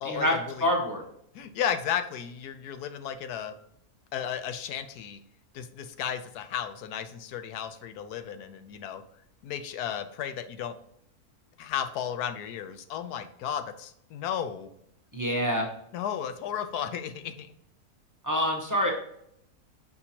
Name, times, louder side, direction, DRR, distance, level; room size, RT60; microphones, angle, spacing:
voice 1, 0.0-0.7 1.3-3.5 4.1-5.2 5.5-9.0 9.4-10.8 11.6-14.7 15.9-17.5, left 9 dB, 80° left, 8 dB, 1.2 m, -34 dB
voice 2, 0.6-1.0 15.1-15.7 18.2-18.9, equal, 15° right, 0 dB, 0.9 m, -26 dB
6.6 x 5.5 x 2.8 m, 0.72 s
omnidirectional pair, 1.6 m